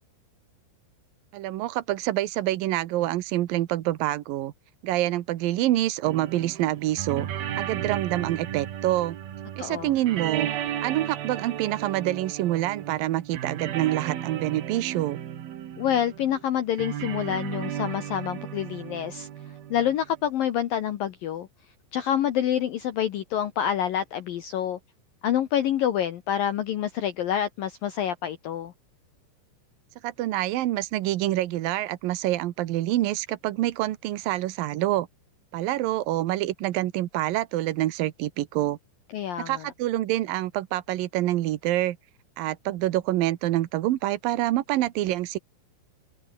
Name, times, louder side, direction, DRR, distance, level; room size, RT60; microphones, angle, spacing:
voice 1, 1.3-4.5 4.8-7.3 7.6-9.2 9.6-10.5 10.8-15.2 30.0-35.1 35.5-38.8 39.4-42.0 42.4-45.4, right 15 dB, 80° right, 2.0 m, -26 dB
sound 1, 6.0-20.2, right 10 dB, 55° right, 3.4 m, -35 dB
voice 2, 9.6-9.9 15.8-19.3 19.7-21.5 21.9-24.8 25.2-28.7 39.1-39.7, left 10 dB, 70° left, 2.2 m, -27 dB
omnidirectional pair, 5.7 m